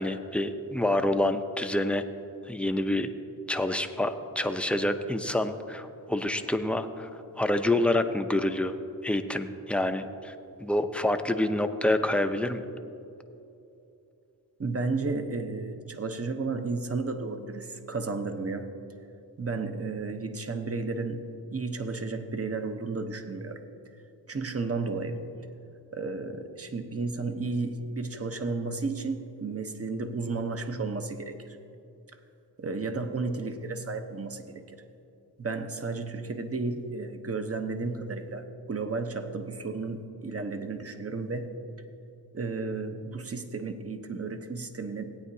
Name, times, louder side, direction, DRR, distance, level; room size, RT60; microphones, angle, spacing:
voice 1, 0.0-2.0 2.5-3.1 3.5-7.1 7.4-8.7 9.0-10.3 10.6-12.6, left 1 dB, 5° left, 8 dB, 0.6 m, -27 dB
voice 2, 14.6-18.7 19.4-21.2 21.5-23.7 24.3-25.3 25.9-31.6 32.6-34.6 35.4-41.5 42.3-45.2, right 3 dB, 35° right, 7 dB, 0.9 m, -33 dB
16.5 x 8.9 x 2.7 m, 2.7 s
cardioid pair, 45°, 43 cm